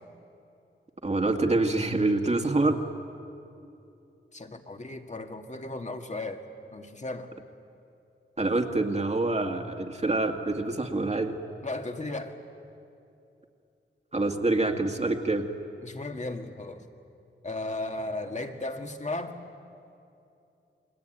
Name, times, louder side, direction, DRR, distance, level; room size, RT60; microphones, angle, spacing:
voice 1, 1.0-2.8 8.4-11.4 14.1-15.5, right 2 dB, 30° right, 3 dB, 2.1 m, -26 dB
voice 2, 4.3-7.3 11.6-12.4 15.8-16.8 17.4-19.4, left 2 dB, 35° left, 5 dB, 2.0 m, -35 dB
29.0 x 22.5 x 9.2 m, 2.7 s
wide cardioid pair, 90°, 21 cm